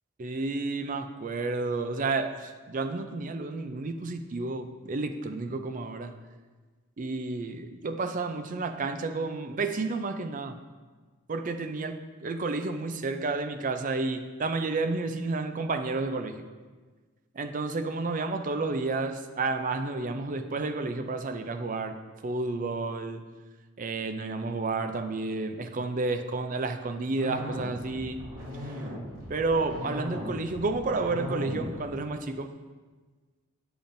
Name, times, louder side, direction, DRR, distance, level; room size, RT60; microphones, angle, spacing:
voice 1, 0.2-6.1 7.0-10.6 11.3-16.4 17.4-21.9 22.2-23.2 23.8-28.2 29.3-32.5, right 3 dB, 35° right, 8 dB, 0.4 m, -31 dB
sound 1, 27.2-32.1, left 1 dB, 85° right, 2.3 m, -37 dB
8.8 x 6.9 x 2.6 m, 1.4 s
head